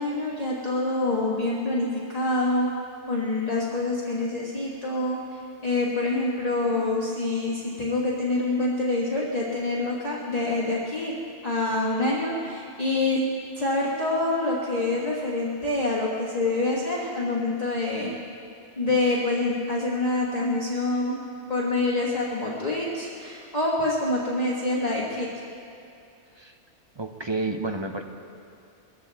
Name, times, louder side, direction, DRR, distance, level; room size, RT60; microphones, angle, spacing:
voice 1, 0.0-2.7 3.1-11.1 11.4-13.2 13.6-18.2 18.8-21.2 21.5-25.3, left 2 dB, 35° left, -6 dB, 1.6 m, -26 dB
voice 2, 27.0-28.0, right 2 dB, 30° right, 5 dB, 0.6 m, -30 dB
21.5 x 15.0 x 3.5 m, 2.6 s
omnidirectional pair, 1.2 m